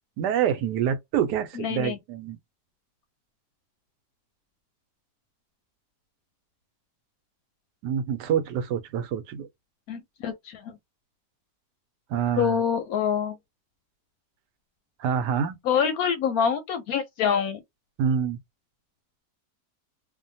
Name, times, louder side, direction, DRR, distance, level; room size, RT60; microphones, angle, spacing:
voice 1, 0.2-2.4 7.8-9.5 12.1-12.6 15.0-15.6 18.0-18.4, right 8 dB, 75° right, 1.1 m, -26 dB
voice 2, 1.5-2.0 9.9-10.8 12.4-13.4 15.6-17.6, left 7 dB, 70° left, 0.9 m, -26 dB
2.8 x 2.2 x 2.6 m
omnidirectional pair, 1.9 m